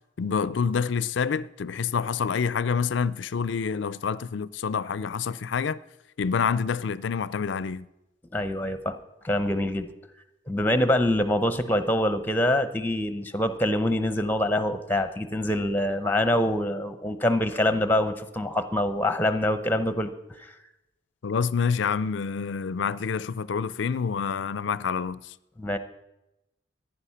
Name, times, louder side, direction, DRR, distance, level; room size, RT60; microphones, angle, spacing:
voice 1, 0.2-5.8 6.2-7.9 21.2-25.2, left 6 dB, 65° left, 0.4 m, -27 dB
voice 2, 8.3-8.9 9.2-9.9 10.5-20.1 20.4-20.5 25.6-25.8, left 1 dB, 10° left, 0.8 m, -25 dB
15.0 x 10.5 x 5.7 m
head